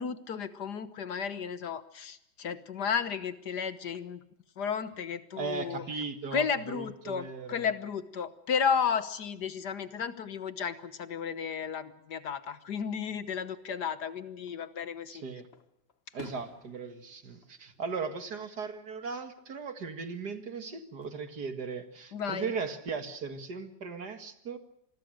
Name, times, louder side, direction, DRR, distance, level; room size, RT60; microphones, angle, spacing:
voice 1, 0.0-4.2 4.6-5.8 6.3-15.2 22.1-22.5, left 6 dB, 60° left, 13 dB, 1.7 m, -33 dB
voice 2, 5.4-7.7 15.1-15.5 16.1-24.6, right 5 dB, 60° right, 9 dB, 2.3 m, -38 dB
Fireworks, 14.3-15.0 15.5-18.6 19.0-19.5 21.1-21.9, left 5 dB, 40° left, 1.2 m, -53 dB
26.5 x 21.0 x 6.4 m, 0.76 s
omnidirectional pair, 2.0 m